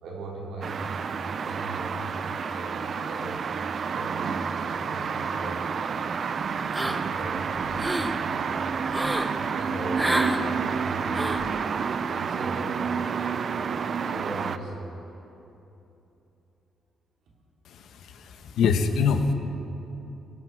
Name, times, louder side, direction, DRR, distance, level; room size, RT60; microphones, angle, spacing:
voice 1, 0.0-3.5 3.9-6.3 6.8-8.9 9.3-11.7 12.0-15.0, right 2 dB, 85° right, -3 dB, 3.5 m, -39 dB
sound 1, 0.6-14.6, right 6 dB, 50° right, 0.5 m, -29 dB
sound 2, 6.7-7.2 7.6-8.1 8.9-9.3 9.9-10.4 11.1-11.5, right 1 dB, 10° right, 0.8 m, -28 dB
voice 2, 17.7-19.3, left 5 dB, 80° left, 7 dB, 1.1 m, -25 dB
19.0 x 14.0 x 4.8 m, 3.0 s
cardioid pair, 120°, 0 cm